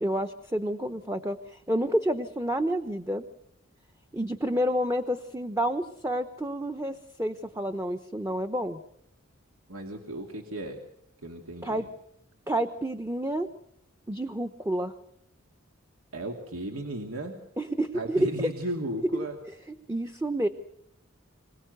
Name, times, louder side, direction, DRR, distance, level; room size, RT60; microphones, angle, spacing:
voice 1, 0.0-3.2 4.1-8.8 11.6-11.8 12.5-13.5 14.1-14.9 17.6-18.3 19.9-20.5, right 1 dB, 15° right, 7 dB, 0.8 m, -29 dB
voice 2, 9.7-10.8 11.2-11.9 16.1-17.4 17.9-19.4, right 1 dB, 85° right, 3 dB, 2.5 m, -35 dB
26.5 x 18.0 x 8.1 m, 0.76 s
head